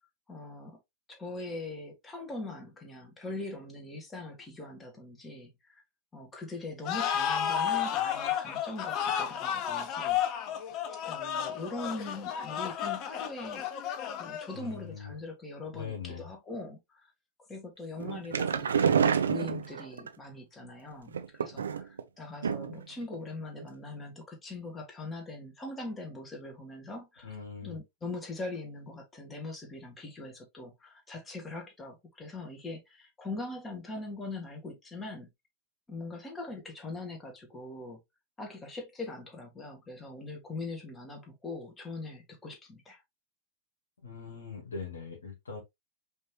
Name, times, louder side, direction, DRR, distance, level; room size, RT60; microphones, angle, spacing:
voice 1, 0.3-0.8 1.1-5.8 6.1-10.2 11.1-13.7 14.2-17.1 17.5-27.3 27.6-35.3 35.9-38.0 38.4-43.0, left 2 dB, 15° left, 1.9 m, -41 dB
sound 1, 6.8-14.7, left 9 dB, 40° left, 0.9 m, -32 dB
voice 2, 14.5-15.1 15.7-16.2 27.2-27.8 44.0-45.6, left 6 dB, 70° left, 1.9 m, -41 dB
sound 2, 18.0-20.1 21.1-22.0 22.4-22.9 23.1-23.2 23.6-23.7, right 7 dB, 70° right, 0.5 m, -28 dB
5.2 x 3.3 x 2.8 m
figure-of-eight pair, 90°, 0 cm